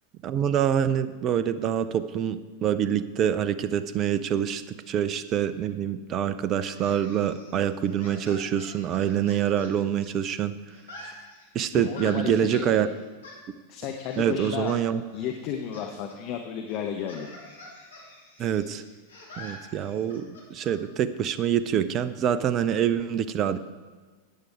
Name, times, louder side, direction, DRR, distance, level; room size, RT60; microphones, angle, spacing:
voice 1, 0.2-10.5 11.5-12.9 14.2-15.0 18.4-18.8 19.4-23.6, right 9 dB, 35° right, 14 dB, 0.6 m, -26 dB
sound 1, 6.7-10.4 10.7-12.7 13.2-13.4 14.1-14.8 15.1-15.8 16.1-16.2 16.7-20.7, left 1 dB, 70° left, 2.7 m, -46 dB
voice 2, 11.7-12.9 13.7-14.7 15.1-17.3, left 8 dB, 40° left, 4 dB, 0.9 m, -33 dB
13.5 x 9.1 x 4.7 m, 1.4 s
figure-of-eight pair, 90°, 0 cm